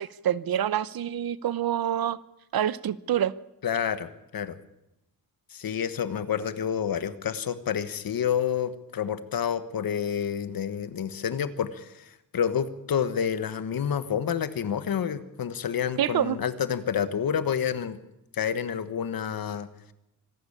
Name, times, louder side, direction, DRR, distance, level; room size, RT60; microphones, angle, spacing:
voice 1, 0.0-2.2 2.5-3.3 16.0-16.4, right 10 dB, 75° right, 18 dB, 0.8 m, -27 dB
voice 2, 3.6-4.6 5.5-18.0 18.3-19.7, left 8 dB, 70° left, 12 dB, 1.4 m, -29 dB
25.0 x 12.0 x 8.6 m, 0.89 s
wide cardioid pair, 130°, 36 cm